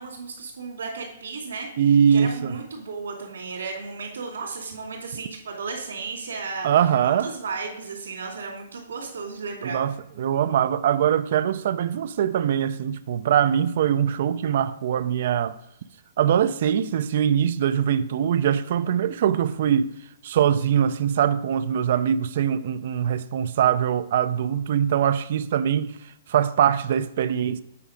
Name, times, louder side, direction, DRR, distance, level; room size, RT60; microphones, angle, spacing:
voice 1, 0.0-1.7 2.1-6.7 7.0-9.8, right 4 dB, 90° right, 2.5 m, -34 dB
voice 2, 1.8-2.5 6.6-7.3 9.6-15.6 16.2-19.9 20.2-26.0 26.3-27.6, right 9 dB, 60° right, 0.4 m, -22 dB
8.4 x 4.9 x 5.0 m
hypercardioid pair, 145°, 0 cm